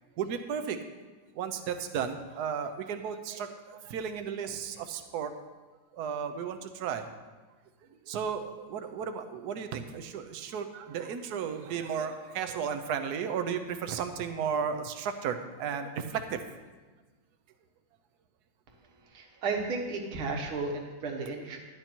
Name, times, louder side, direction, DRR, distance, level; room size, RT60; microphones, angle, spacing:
voice 1, 0.2-0.8 1.3-5.3 5.9-7.1 8.1-16.4, right 7 dB, 60° right, 8 dB, 1.2 m, -34 dB
voice 2, 19.1-21.6, right 3 dB, 90° right, 2 dB, 2.2 m, -33 dB
11.5 x 9.9 x 4.5 m, 1.3 s
omnidirectional pair, 2.2 m